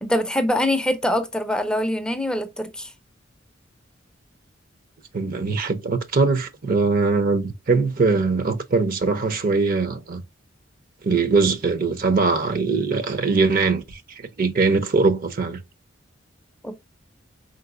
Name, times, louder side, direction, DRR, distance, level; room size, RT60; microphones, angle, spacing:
voice 1, 0.0-2.9 16.6-16.8, left 1 dB, 5° left, 0.4 m, -24 dB
voice 2, 5.1-10.2 11.0-15.6, right 4 dB, 50° right, 0.5 m, -21 dB
4.3 x 3.8 x 2.4 m
head